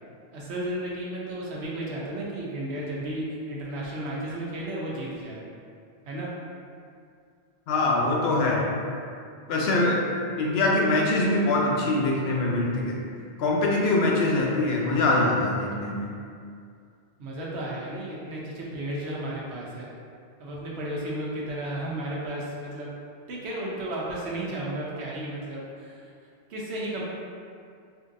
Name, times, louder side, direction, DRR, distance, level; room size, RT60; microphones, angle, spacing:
voice 1, 0.3-5.4 6.0-6.3 17.2-19.9 20.4-22.9 23.3-26.0 26.5-27.0, right 1 dB, 85° right, -5 dB, 1.0 m, -33 dB
voice 2, 7.7-8.7 9.5-10.0 10.4-13.0 13.4-16.1, left 2 dB, 75° left, -2 dB, 0.8 m, -23 dB
3.7 x 2.6 x 2.5 m, 2.3 s
omnidirectional pair, 1.1 m